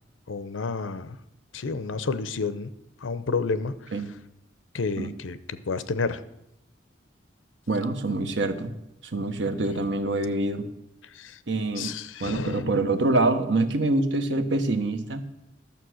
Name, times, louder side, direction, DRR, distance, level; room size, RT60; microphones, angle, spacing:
voice 1, 0.3-1.2 1.5-2.7 3.0-3.7 4.7-6.2 11.1-11.4 11.8-12.8, left 4 dB, 85° left, 14 dB, 0.7 m, -30 dB
voice 2, 7.7-8.7 9.1-10.7 11.5-11.9 12.2-15.2, right 2 dB, 65° right, 8 dB, 1.1 m, -25 dB
12.0 x 7.0 x 6.3 m, 0.84 s
head